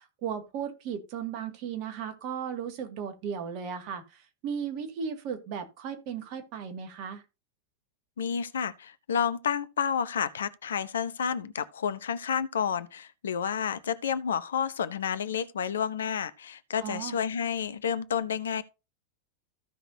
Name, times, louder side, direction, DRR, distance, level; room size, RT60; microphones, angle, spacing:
voice 1, 0.0-7.2 16.8-17.2, right 7 dB, 40° right, 2.1 m, -36 dB
voice 2, 8.2-18.6, left 7 dB, 65° left, 0.7 m, -30 dB
14.5 x 5.9 x 2.7 m
figure-of-eight pair, 90°, 0 cm